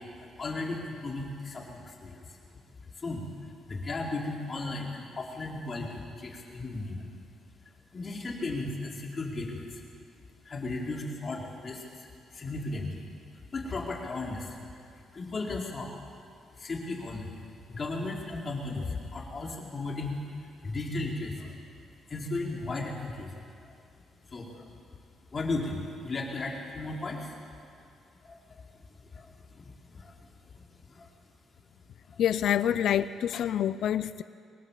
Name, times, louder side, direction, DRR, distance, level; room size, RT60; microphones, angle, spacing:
voice 1, 0.0-2.4 2.9-7.1 7.9-9.8 10.4-13.0 13.5-14.6 14.9-15.9 16.5-17.4 17.7-20.2 20.6-21.6 22.1-23.3 23.6-23.8 24.3-24.7 25.3-27.4 28.2-28.9 29.1-30.6 30.9-31.1 32.1-32.2, left 2 dB, 35° left, -1 dB, 4.7 m, -36 dB
voice 2, 32.2-34.2, left 10 dB, 70° left, 15 dB, 0.5 m, -27 dB
23.5 x 19.0 x 7.6 m, 2.4 s
cardioid pair, 90°, 0 cm